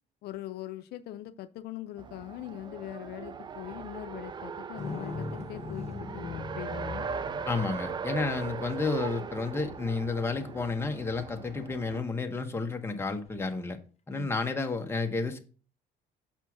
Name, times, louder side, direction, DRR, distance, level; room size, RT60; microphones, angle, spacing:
voice 1, 0.2-7.1 14.1-14.3, left 13 dB, 75° left, 0.5 m, -41 dB
Race car auto racing, 2.0-12.0, right 6 dB, 25° right, 0.3 m, -39 dB
sound 1, 4.8-10.2 13.3-13.4, left 3 dB, 40° left, 1.3 m, -41 dB
voice 2, 7.5-13.8 14.1-15.4, left 3 dB, 15° left, 1.0 m, -31 dB
6.2 x 4.4 x 6.0 m
cardioid pair, 110°, 17 cm